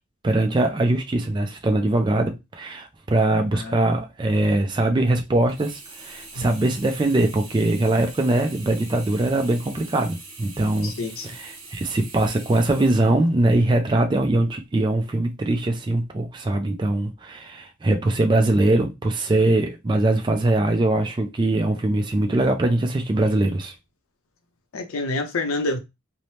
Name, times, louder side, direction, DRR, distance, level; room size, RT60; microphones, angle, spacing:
voice 1, 0.2-10.9 11.2-23.7, right 2 dB, 20° right, 0.3 m, -22 dB
Sink (filling or washing), 5.5-13.7 14.3-14.4, right 3 dB, 60° right, 1.0 m, -43 dB
voice 2, 10.8-11.3 24.7-25.8, left 2 dB, 75° left, 0.5 m, -27 dB
2.7 x 2.0 x 3.1 m
head